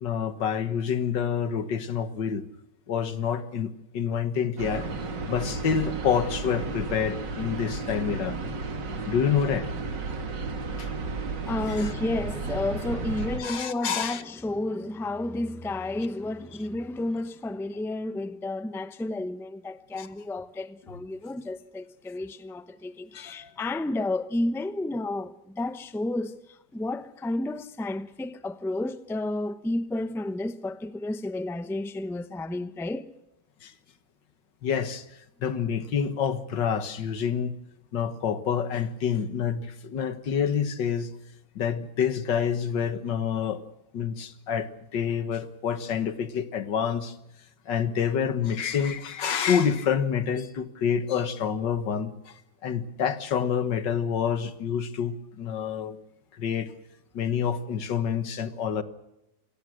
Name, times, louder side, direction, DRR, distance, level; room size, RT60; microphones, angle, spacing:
voice 1, 0.0-2.4 2.9-4.9 5.3-8.4 9.1-9.7 10.8-10.9 11.7-11.9 13.0-13.1 13.4-14.2 20.0-20.1 23.1-23.5 33.6-33.7 34.6-35.1 35.4-37.6 37.9-41.1 41.6-43.6 43.9-47.2 47.7-56.0 56.3-56.7 57.1-58.8, left 7 dB, 90° left, 2.0 m, -28 dB
sound 1, 4.6-13.4, right 3 dB, 85° right, 2.8 m, -33 dB
voice 2, 11.5-33.1, left 2 dB, 5° left, 0.5 m, -31 dB
28.0 x 18.0 x 6.4 m
omnidirectional pair, 1.9 m